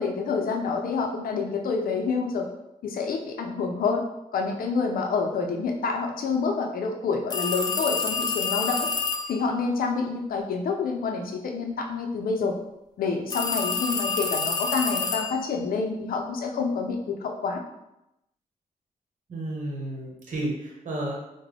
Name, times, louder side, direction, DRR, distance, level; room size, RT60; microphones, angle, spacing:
voice 1, 0.0-2.5 2.8-4.0 4.3-8.9 9.3-12.6 13.0-17.6, left 4 dB, 85° left, 3 dB, 0.5 m, -28 dB
sound 1, 7.3-9.4 13.3-15.5, left 4 dB, 30° left, 0.4 m, -28 dB
voice 2, 19.3-21.2, right 1 dB, 60° right, -2 dB, 1.0 m, -32 dB
3.6 x 2.1 x 3.3 m, 0.89 s
cardioid pair, 90°, 14 cm